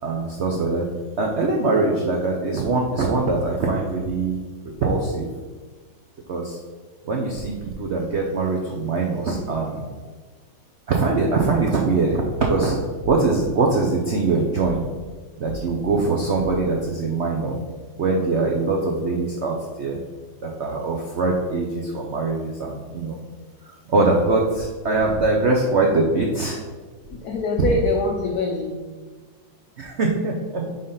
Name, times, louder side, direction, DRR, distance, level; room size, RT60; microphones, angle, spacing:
voice 1, 0.0-0.8 1.2-4.4 4.8-5.3 6.3-6.6 7.0-9.8 10.9-12.2 12.5-12.8 13.0-14.8 15.4-17.6 18.0-20.0 20.4-23.2 23.9-26.6 29.8-30.7, right 3 dB, 85° right, 0 dB, 0.6 m, -22 dB
sound 1, 13.0-13.3 14.6-14.9 15.5-15.7 16.4-16.7, left 2 dB, 90° left, 1.4 m, -37 dB
voice 2, 27.0-28.9 30.6-30.8, left 2 dB, 65° left, 1 dB, 1.0 m, -24 dB
5.0 x 4.1 x 5.5 m, 1.4 s
omnidirectional pair, 2.2 m